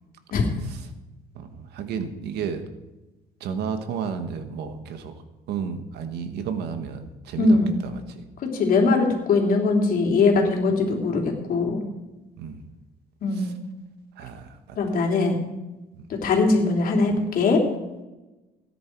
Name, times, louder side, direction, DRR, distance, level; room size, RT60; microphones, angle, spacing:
voice 1, 1.3-2.6 3.4-5.1 5.5-8.2 12.4-12.6 13.3-13.5 14.2-14.8 15.9-16.0, right 6 dB, 75° right, 8 dB, 1.6 m, -32 dB
voice 2, 7.4-7.7 8.4-11.9 13.2-13.6 14.8-15.4 16.2-17.6, left 3 dB, 60° left, 1 dB, 3.5 m, -21 dB
17.0 x 10.0 x 4.8 m, 1.1 s
cardioid pair, 110°, 17 cm